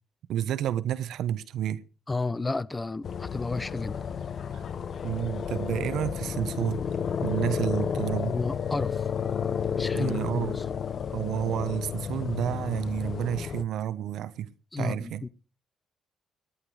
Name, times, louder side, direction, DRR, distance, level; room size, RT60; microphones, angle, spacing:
voice 1, 0.3-1.8 4.5-4.6 5.0-6.9 7.2-8.4 9.9-10.6 11.1-14.5 14.8-15.2, right 11 dB, 80° right, 1.0 m, -30 dB
voice 2, 2.1-4.0 8.2-9.1 9.8-10.5 14.7-15.3, left 3 dB, 20° left, 0.7 m, -32 dB
sound 1, 3.0-13.6, left 7 dB, 55° left, 0.9 m, -32 dB
19.5 x 9.1 x 4.9 m
cardioid pair, 90°, 0 cm